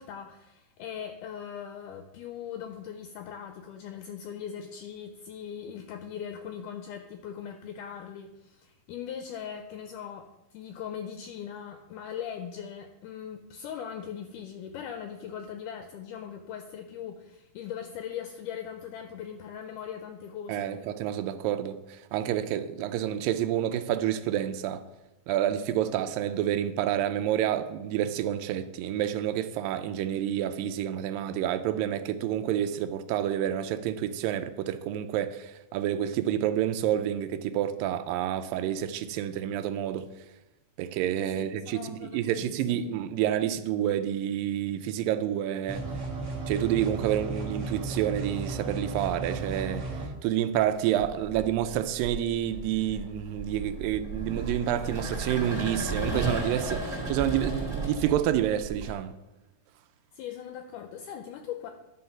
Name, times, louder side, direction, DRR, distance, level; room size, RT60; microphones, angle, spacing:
voice 1, 0.0-20.8 41.3-42.8 60.1-61.7, left 8 dB, 80° left, 1.9 m, -40 dB
voice 2, 20.5-24.8 25.3-40.1 40.8-45.8 46.5-49.8 50.2-59.1, right 11 dB, 80° right, 2.2 m, -29 dB
sound 1, 45.7-50.1, right 3 dB, 45° right, 1.3 m, -34 dB
sound 2, 49.0-49.5 50.6-58.9, right 3 dB, 25° right, 2.4 m, -34 dB
10.5 x 3.9 x 5.7 m
omnidirectional pair, 4.1 m